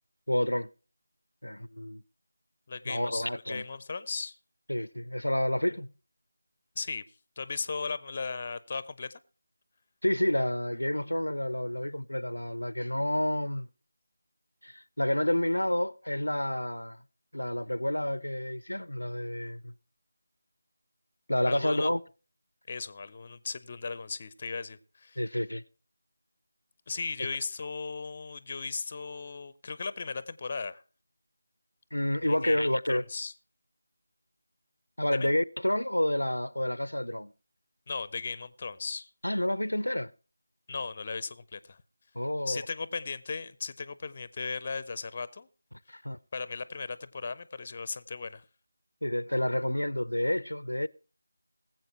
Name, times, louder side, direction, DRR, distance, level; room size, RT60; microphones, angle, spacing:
voice 1, 0.3-0.7 1.4-2.0 2.9-3.6 4.7-5.9 10.0-13.7 14.6-17.0 17.3-19.7 21.3-22.0 25.2-25.6 31.9-33.0 35.0-37.3 39.2-40.1 42.1-42.6 45.9-46.2 49.0-50.9, left 1 dB, 85° left, 0.5 m, -29 dB
voice 2, 2.7-4.4 6.8-7.0 7.4-9.1 21.5-21.9 22.7-25.2 26.9-30.8 32.2-33.3 35.2-35.3 37.9-39.1 40.7-41.8 42.5-45.5 46.3-48.4, left 4 dB, 30° left, 0.6 m, -37 dB
19.5 x 7.8 x 4.3 m
figure-of-eight pair, 165°, 0 cm